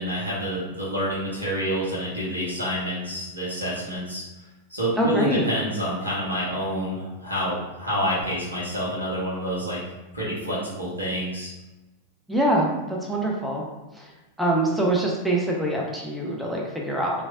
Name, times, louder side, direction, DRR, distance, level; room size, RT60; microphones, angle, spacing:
voice 1, 0.0-4.2 4.7-9.8 10.1-11.5, equal, 85° right, -6 dB, 1.0 m, -28 dB
voice 2, 5.0-5.5 12.3-13.6 13.9-14.1 14.4-17.2, right 1 dB, 5° right, -3 dB, 0.5 m, -24 dB
3.1 x 2.6 x 2.4 m, 1.1 s
figure-of-eight pair, 90°, 0 cm